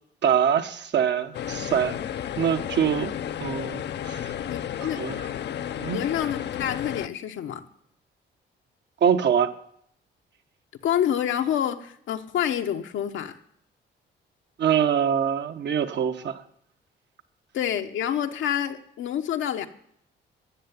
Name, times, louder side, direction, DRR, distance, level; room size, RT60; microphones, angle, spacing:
voice 1, 0.2-2.0 2.4-3.1 3.4-4.3 4.8-5.2 5.8-6.0 9.0-9.5 14.6-16.4, right 8 dB, 60° right, 8 dB, 1.2 m, -24 dB
sound 1, 1.3-7.1, left 10 dB, 60° left, 0.7 m, -32 dB
voice 2, 4.5-5.0 5.9-7.6 10.8-13.4 17.5-19.7, left 10 dB, 75° left, 7 dB, 1.1 m, -27 dB
14.0 x 6.9 x 9.6 m, 0.69 s
cardioid pair, 90°, 20 cm